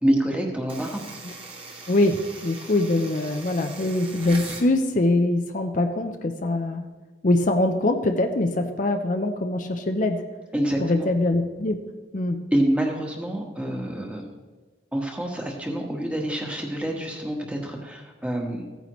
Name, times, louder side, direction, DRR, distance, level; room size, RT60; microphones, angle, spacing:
voice 1, 0.0-1.0 10.5-11.1 12.5-14.2 14.9-18.6, right 1 dB, 5° right, 0 dB, 1.4 m, -26 dB
sound 1, 0.7-4.7, right 3 dB, 30° right, 1.6 m, -40 dB
voice 2, 1.9-6.8 7.2-10.2 10.8-11.8 12.1-12.4, left 2 dB, 45° left, 5 dB, 0.6 m, -23 dB
15.5 x 9.2 x 3.1 m, 1.3 s
head